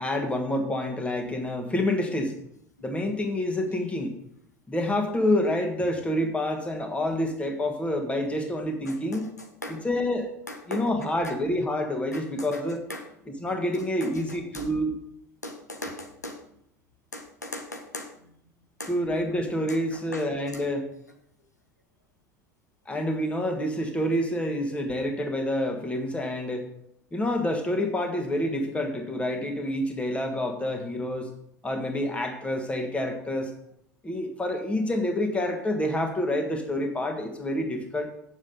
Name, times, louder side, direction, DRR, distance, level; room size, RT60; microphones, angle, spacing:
voice 1, 0.0-2.4 2.8-4.1 4.7-9.3 9.7-10.3 10.7-12.8 13.3-14.9 18.9-20.9 22.9-26.7 27.1-31.3 31.6-33.5 34.0-38.1, left 1 dB, 15° left, 4 dB, 1.8 m, -28 dB
voice 2, 8.9-9.2 9.6-9.8 10.5-10.9 11.2-11.3 12.1-12.2 12.5-12.6 12.9-13.1 14.0-14.1 14.5-14.7 15.4-16.4 17.1-18.1 18.8-18.9 20.1-20.2 20.5-20.6, left 1 dB, 85° left, 4 dB, 1.0 m, -38 dB
8.6 x 7.2 x 5.4 m, 0.73 s
figure-of-eight pair, 75°, 9 cm